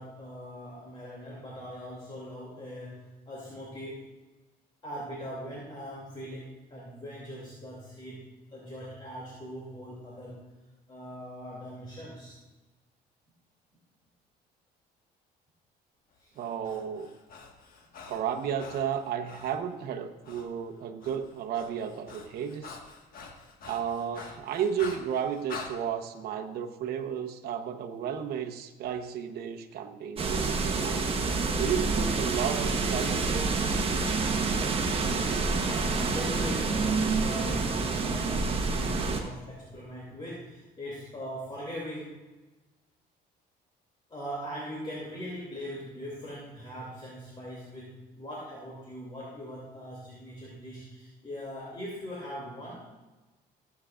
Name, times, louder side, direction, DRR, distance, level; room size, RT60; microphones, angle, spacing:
voice 1, 0.0-4.1 4.8-10.4 10.9-12.4 16.2-16.3 35.9-42.2 44.1-52.9, equal, 30° left, -4 dB, 2.7 m, -41 dB
Breathing, 16.4-19.6 20.2-20.5 20.8-25.7, left 5 dB, 60° left, 1.6 m, -46 dB
voice 2, 16.4-17.1 18.1-22.8 23.6-31.0 31.6-33.6, right 8 dB, 65° right, 4 dB, 1.0 m, -33 dB
sound 1, 30.2-39.2, right 4 dB, 35° right, 1.3 m, -28 dB
15.0 x 8.3 x 2.5 m, 1.2 s
cardioid pair, 110°, 17 cm